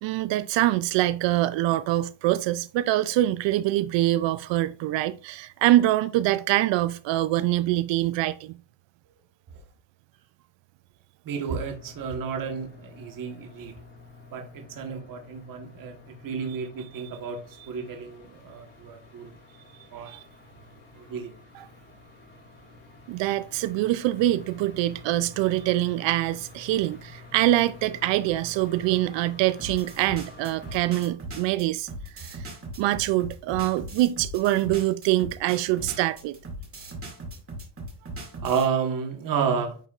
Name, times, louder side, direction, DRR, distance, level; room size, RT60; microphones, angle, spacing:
voice 1, 0.0-8.6 20.1-20.2 23.1-31.9 32.2-32.5 32.8-36.4, right 15 dB, 60° right, 0.5 m, -24 dB
voice 2, 11.2-13.8 14.3-19.4 19.9-20.2 20.9-21.4 38.4-39.8, right 6 dB, 40° right, 1.4 m, -31 dB
sound 1, 11.5-31.1, left 3 dB, 30° left, 3.1 m, -49 dB
sound 2, 29.6-38.7, right 1 dB, 25° right, 2.3 m, -39 dB
9.3 x 4.1 x 2.4 m
cardioid pair, 110°, 50 cm